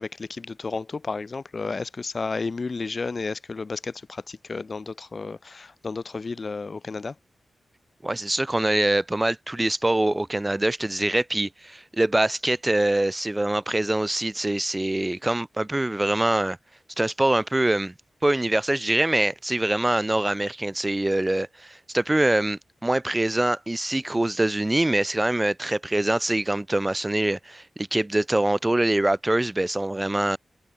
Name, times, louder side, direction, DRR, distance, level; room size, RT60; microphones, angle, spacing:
voice 1, 0.0-7.1, left 4 dB, 40° left, 3.0 m, -32 dB
voice 2, 8.0-16.6 17.0-17.9 18.2-30.4, right 1 dB, 15° right, 1.2 m, -24 dB
wide cardioid pair, 125°, 0 cm